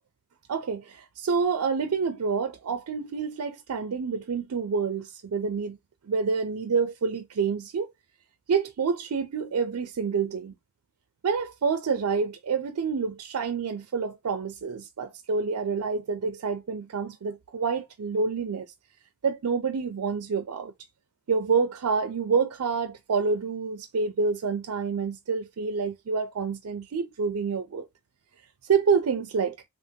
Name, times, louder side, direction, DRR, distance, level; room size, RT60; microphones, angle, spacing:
voice 1, 0.5-5.8 6.1-7.9 8.5-10.5 11.2-18.7 19.2-20.7 21.3-27.9 28.7-29.6, right 5 dB, 85° right, 0.5 m, -27 dB
3.6 x 3.0 x 2.7 m
head